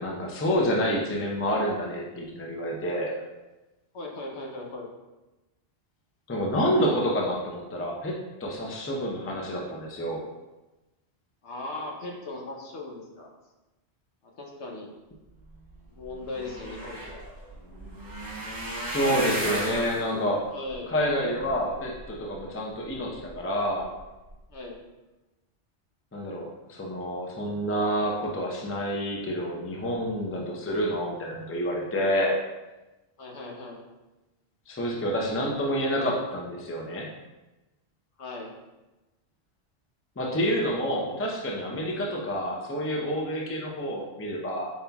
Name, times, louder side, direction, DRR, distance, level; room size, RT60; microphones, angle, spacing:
voice 1, 0.0-3.1 6.3-10.2 18.8-20.4 20.9-23.9 26.1-32.4 34.7-37.1 40.2-44.7, equal, 15° left, -1 dB, 0.5 m, -28 dB
voice 2, 3.9-4.9 11.4-13.3 14.2-14.9 15.9-17.2 20.5-21.0 24.5-24.8 33.2-33.8 38.2-38.5 41.9-42.1, left 2 dB, 75° left, 0 dB, 1.1 m, -38 dB
sound 1, 15.7-15.8 16.0-22.4 22.9-23.4 23.8-24.0 24.3-24.4, right 1 dB, 20° right, 0.8 m, -35 dB
5.5 x 4.2 x 2.3 m, 1.1 s
omnidirectional pair, 1.2 m